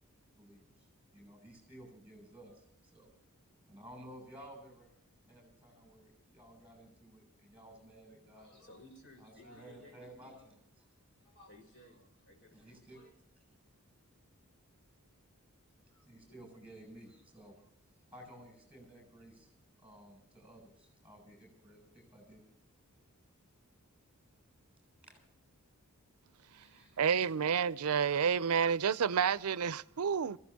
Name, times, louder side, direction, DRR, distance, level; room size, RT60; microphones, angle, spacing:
voice 1, 0.3-3.1 3.7-4.9 5.3-8.7 9.2-10.9 12.5-13.0 16.1-17.7 18.1-19.5 19.8-22.5 25.0-25.2 26.4-27.3, right 1 dB, 5° right, 7.1 m, -55 dB
voice 2, 8.3-10.0 10.4-10.5 11.2-13.2 15.9-16.6, left 1 dB, 55° left, 5.3 m, -59 dB
voice 3, 27.0-30.4, right 7 dB, 85° right, 0.5 m, -30 dB
27.0 x 15.5 x 2.8 m
head